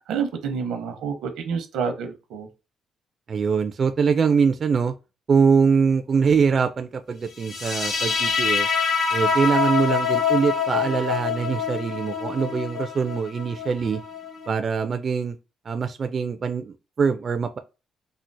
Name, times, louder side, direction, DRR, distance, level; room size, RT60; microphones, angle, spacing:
voice 1, 0.1-2.5, right 6 dB, 85° right, 0.7 m, -28 dB
voice 2, 3.3-4.9 5.3-8.7 9.1-14.0 14.5-15.4 15.7-17.6, right 5 dB, 45° right, 0.3 m, -23 dB
sound 1, 7.4-14.5, left 5 dB, 80° left, 1.7 m, -25 dB
4.3 x 2.0 x 2.6 m
cardioid pair, 90°, 0 cm